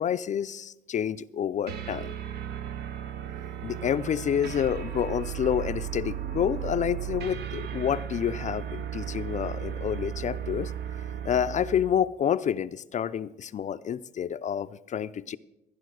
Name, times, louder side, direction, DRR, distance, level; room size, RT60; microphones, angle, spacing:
voice 1, 0.0-2.1 3.6-10.7 11.2-15.4, left 9 dB, 45° left, 12 dB, 0.5 m, -28 dB
sound 1, 1.7-12.0, right 9 dB, 70° right, 0.8 m, -35 dB
14.0 x 9.8 x 6.3 m, 0.90 s
cardioid pair, 105°, 18 cm